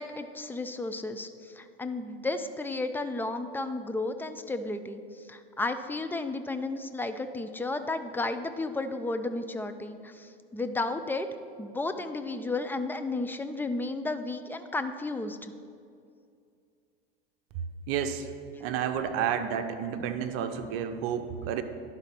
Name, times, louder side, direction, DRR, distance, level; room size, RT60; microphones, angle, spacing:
voice 1, 0.0-5.0 5.3-11.3 11.6-15.5, left 2 dB, 5° left, 9 dB, 0.3 m, -33 dB
voice 2, 17.9-18.3 18.6-21.6, right 8 dB, 50° right, 8 dB, 0.8 m, -30 dB
11.5 x 4.1 x 4.4 m, 2.4 s
hypercardioid pair, 90°, 29 cm